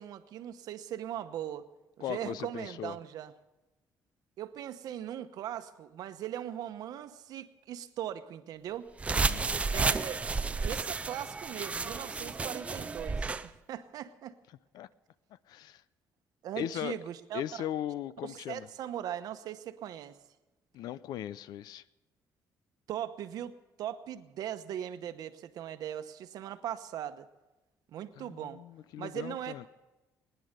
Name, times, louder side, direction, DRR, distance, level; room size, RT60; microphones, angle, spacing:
voice 1, 0.0-1.6 2.0-3.3 4.4-8.9 9.6-10.2 10.6-14.4 16.4-17.4 18.2-20.2 22.9-27.3 27.9-28.6 29.0-29.7, right 11 dB, 70° right, 10 dB, 0.9 m, -39 dB
voice 2, 2.0-3.0 9.1-9.6 14.7-14.9 15.5-15.8 16.6-17.0 17.3-18.7 20.7-21.8 28.2-29.7, left 11 dB, 80° left, 18 dB, 0.5 m, -38 dB
sound 1, 9.0-13.5, right 4 dB, 20° right, 0.5 m, -32 dB
20.0 x 10.5 x 6.6 m, 1.1 s
cardioid pair, 150°, 7 cm